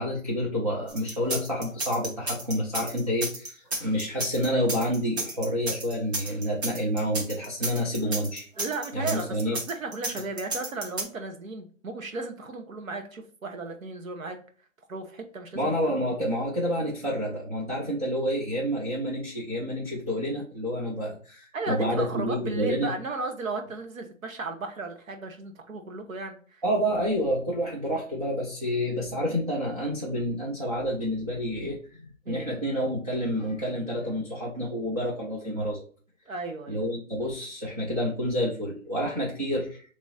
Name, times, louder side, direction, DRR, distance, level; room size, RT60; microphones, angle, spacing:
voice 1, 0.0-8.5 8.9-9.6 15.5-22.9 26.6-31.8 32.3-35.8 36.7-39.8, equal, 30° right, -5 dB, 0.6 m, -29 dB
sound 1, 0.9-11.0, right 2 dB, 50° right, 1.3 m, -32 dB
voice 2, 8.6-14.4 14.9-15.9 21.5-26.6 32.2-32.5 36.3-36.8, right 3 dB, 75° right, 5 dB, 1.2 m, -35 dB
3.6 x 3.0 x 4.1 m, 0.42 s
hypercardioid pair, 175°, 40 cm